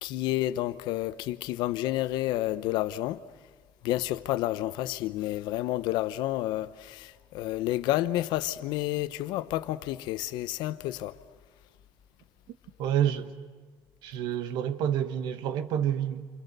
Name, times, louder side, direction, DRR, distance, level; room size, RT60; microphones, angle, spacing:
voice 1, 0.0-3.2 3.8-11.1, left 15 dB, 75° left, 0.8 m, -30 dB
voice 2, 12.8-13.3 14.0-16.3, right 10 dB, 70° right, 1.3 m, -28 dB
28.5 x 28.5 x 6.8 m
cardioid pair, 155°, 8 cm